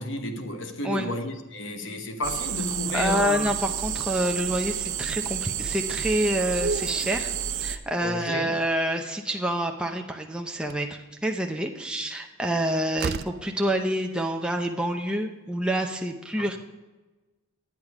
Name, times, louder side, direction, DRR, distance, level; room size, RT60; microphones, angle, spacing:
voice 1, 0.0-3.5 8.0-8.5 16.4-16.6, left 1 dB, 60° left, 1.1 m, -32 dB
sound 1, 2.2-7.8, right 8 dB, 90° right, 0.7 m, -30 dB
voice 2, 2.9-7.3 7.6-16.6, right 1 dB, 5° right, 0.6 m, -27 dB
Slam, 9.9-10.0 10.6-10.9 12.5-12.6 13.0-13.5, right 6 dB, 50° right, 0.4 m, -33 dB
11.0 x 9.0 x 4.8 m
head